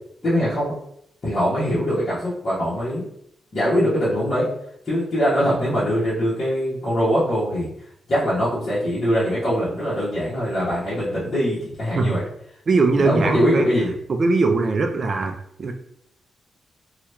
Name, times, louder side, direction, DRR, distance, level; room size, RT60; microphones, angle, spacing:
voice 1, 0.2-0.7 1.2-3.0 3.5-4.5 4.8-7.7 8.1-12.2 12.9-13.9, equal, 40° left, -11 dB, 1.0 m, -22 dB
voice 2, 12.7-13.7 14.1-15.7, right 3 dB, 40° right, 5 dB, 0.4 m, -20 dB
2.9 x 2.3 x 3.3 m, 0.72 s
wide cardioid pair, 155°, 0 cm